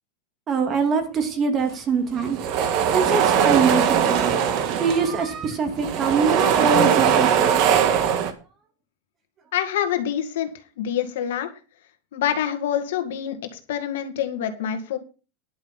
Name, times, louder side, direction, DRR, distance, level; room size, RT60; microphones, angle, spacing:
voice 1, 0.5-2.4 2.9-7.6, right 5 dB, 30° right, 2.5 m, -24 dB
sound 1, 2.1-5.3 5.7-8.3, right 8 dB, 55° right, 1.7 m, -20 dB
voice 2, 9.5-10.5 10.8-11.5 12.1-15.0, left 10 dB, 80° left, 2.0 m, -26 dB
11.0 x 5.7 x 7.2 m
supercardioid pair, 125°, 0 cm